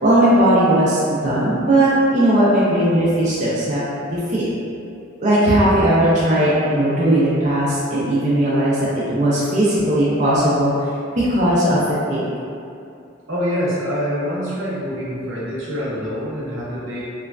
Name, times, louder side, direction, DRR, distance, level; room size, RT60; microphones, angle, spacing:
voice 1, 0.0-3.8 4.1-4.4 5.2-10.7 11.2-11.8 12.1-12.2, right 1 dB, 35° right, -9 dB, 0.4 m, -17 dB
voice 2, 13.3-17.0, equal, 80° right, -8 dB, 0.8 m, -25 dB
3.0 x 2.2 x 2.4 m, 2.5 s
head